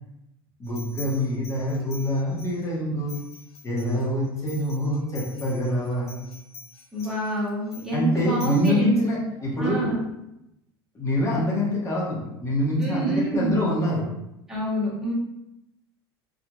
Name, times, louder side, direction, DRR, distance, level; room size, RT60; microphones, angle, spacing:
sound 1, 0.6-2.7 3.1-8.7, left 6 dB, 80° left, 0.7 m, -46 dB
voice 1, 0.6-3.2 3.6-6.2 7.9-9.9 10.9-14.0, left 1 dB, 20° left, -5 dB, 1.0 m, -25 dB
voice 2, 6.9-8.9 9.6-10.0 12.8-13.6 14.5-15.1, right 1 dB, 5° right, -6 dB, 1.1 m, -26 dB
2.8 x 2.5 x 2.3 m, 0.87 s
hypercardioid pair, 80°, 14 cm